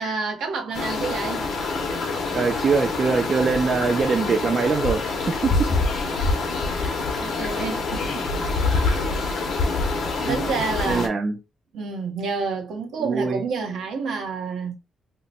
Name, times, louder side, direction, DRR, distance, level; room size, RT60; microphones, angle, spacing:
voice 1, 0.0-1.4 1.8-2.0 6.7-9.4 10.3-11.1 11.7-14.8, right 4 dB, 75° right, 0.9 m, -30 dB
sound 1, 0.7-11.1, left 3 dB, 55° left, 0.7 m, -25 dB
voice 2, 2.3-5.0 5.4-5.5 8.3-8.5 10.3-10.5 10.8-11.4 13.0-13.4, right 4 dB, 35° right, 0.3 m, -23 dB
2.8 x 2.2 x 3.9 m
cardioid pair, 170°, 0 cm